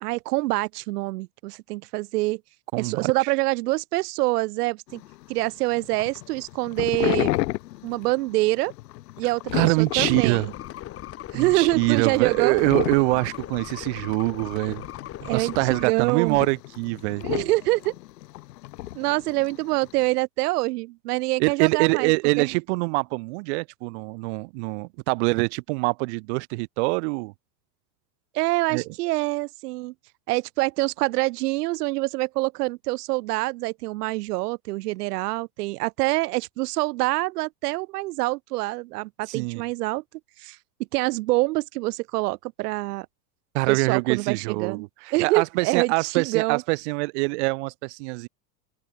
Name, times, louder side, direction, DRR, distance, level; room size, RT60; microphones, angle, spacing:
voice 1, 0.0-2.4 2.8-5.0 5.3-7.4 7.8-8.7 9.2-10.4 11.3-12.6 15.3-16.4 17.2-17.9 19.0-22.1 22.4-22.5 28.3-29.9 30.3-40.0 40.4-40.6 40.9-43.1 43.7-44.8 45.1-46.6, right 21 dB, 65° right, 1.8 m, -25 dB
voice 2, 2.7-3.3 9.5-10.5 11.3-14.8 15.2-17.2 21.4-27.3 28.7-28.8 39.3-39.6 43.5-48.3, right 28 dB, 45° right, 0.5 m, -24 dB
sound 1, 4.9-20.0, left 17 dB, 75° left, 4.2 m, -33 dB
sound 2, 9.9-15.9, left 12 dB, 25° left, 2.0 m, -39 dB
open air
supercardioid pair, 150°, 49 cm